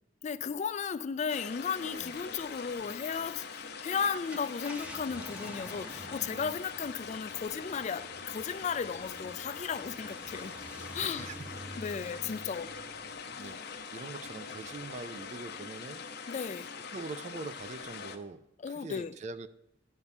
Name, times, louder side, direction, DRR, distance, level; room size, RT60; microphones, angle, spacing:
voice 1, 0.2-10.6 10.9-11.3 11.8-12.7 13.4-13.6 16.3-16.7 18.6-19.1, left 6 dB, 35° left, 0.3 m, -35 dB
sound 1, 1.3-18.2, left 5 dB, 55° left, 0.8 m, -43 dB
sound 2, 3.0-7.0, right 3 dB, 70° right, 2.1 m, -62 dB
Car, 4.1-15.0 15.5-15.6 17.6-17.8, equal, 5° right, 0.9 m, -50 dB
voice 2, 6.2-6.5 11.0-11.4 11.7-12.1 13.3-13.6 13.9-16.0 16.9-19.5, right 3 dB, 35° right, 0.4 m, -43 dB
10.0 x 5.4 x 5.9 m
head